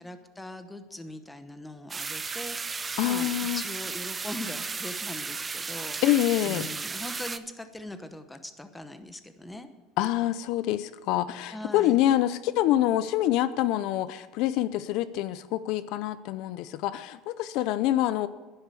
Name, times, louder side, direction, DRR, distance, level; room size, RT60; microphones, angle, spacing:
voice 1, 0.0-9.7 11.5-12.0, left 1 dB, 5° left, 9 dB, 0.9 m, -41 dB
sound 1, 1.9-7.4, right 4 dB, 15° right, 0.5 m, -34 dB
voice 2, 3.0-3.6 6.0-6.7 10.0-18.3, left 13 dB, 65° left, 15 dB, 0.5 m, -26 dB
11.5 x 11.0 x 6.9 m, 1.2 s
cardioid pair, 150°, 0 cm